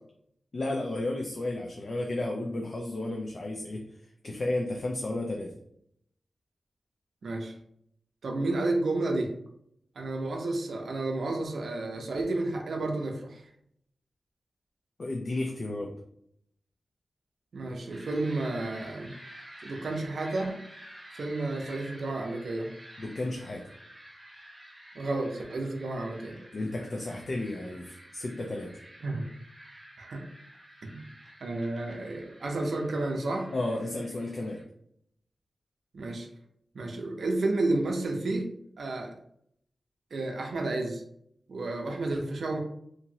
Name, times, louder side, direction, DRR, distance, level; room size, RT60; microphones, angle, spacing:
voice 1, 0.5-3.8 4.2-5.5 15.0-15.9 23.0-23.6 26.5-28.7 33.5-34.6, left 2 dB, 45° left, 0 dB, 0.4 m, -33 dB
voice 2, 7.2-7.5 8.2-9.3 10.0-13.5 17.5-19.1 19.6-20.6 21.1-22.7 24.9-26.4 29.0-29.3 30.0-30.2 30.8-31.0 31.4-33.5 35.9-36.3 36.7-38.5 38.8-39.1 40.1-41.0 41.5-42.6, right 2 dB, 70° right, 1 dB, 0.5 m, -31 dB
sound 1, 17.9-34.6, right 1 dB, 25° right, 0.8 m, -51 dB
2.9 x 2.5 x 2.7 m, 0.71 s
wide cardioid pair, 155°, 0 cm